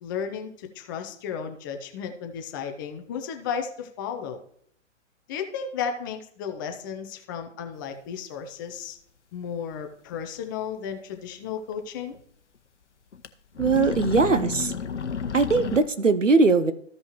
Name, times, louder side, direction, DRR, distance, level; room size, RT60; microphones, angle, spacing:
voice 1, 0.0-4.4 5.3-9.0 9.3-12.1, left 7 dB, 15° left, 5 dB, 0.6 m, -34 dB
sound 1, 9.7-9.8 10.1-10.2 11.7-11.8 12.1-12.2 13.1-13.3 13.5-15.8, left 6 dB, 70° left, 0.9 m, -31 dB
voice 2, 13.6-14.7 15.3-16.7, right 4 dB, 90° right, 12 dB, 0.9 m, -20 dB
14.5 x 5.4 x 3.0 m, 0.67 s
figure-of-eight pair, 130°, 37 cm